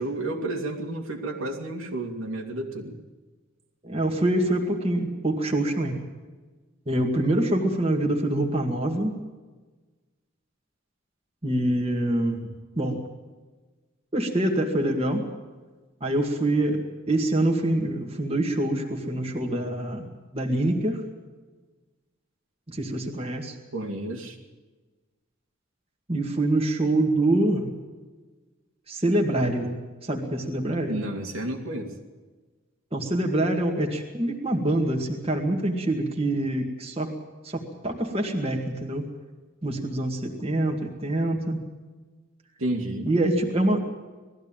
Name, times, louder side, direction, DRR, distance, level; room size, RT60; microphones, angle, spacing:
voice 1, 0.0-2.9 23.7-24.4 30.9-31.9 42.6-43.1, right 1 dB, 85° right, 1 dB, 2.8 m, -31 dB
voice 2, 3.8-6.0 6.9-9.1 11.4-13.0 14.1-15.3 16.0-21.0 22.7-23.6 26.1-27.7 28.9-29.8 30.0-31.0 32.9-37.1 37.4-39.1 39.6-41.6 43.1-43.8, right 1 dB, 30° right, 1 dB, 2.1 m, -25 dB
20.0 x 15.0 x 8.9 m, 1.3 s
head